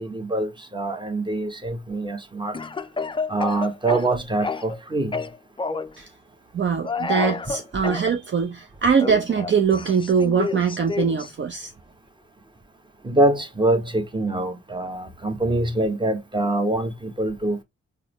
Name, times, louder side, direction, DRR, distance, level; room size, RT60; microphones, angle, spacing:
voice 1, 0.0-2.6 3.3-5.2 13.0-17.6, right 2 dB, 15° right, 1.0 m, -24 dB
Speech / Cough, 2.5-4.8 5.1-5.9 6.8-8.1 9.0-11.3, left 4 dB, 15° left, 0.4 m, -29 dB
voice 2, 6.5-11.7, right 6 dB, 40° right, 0.6 m, -22 dB
3.6 x 2.1 x 3.0 m
supercardioid pair, 50°, 29 cm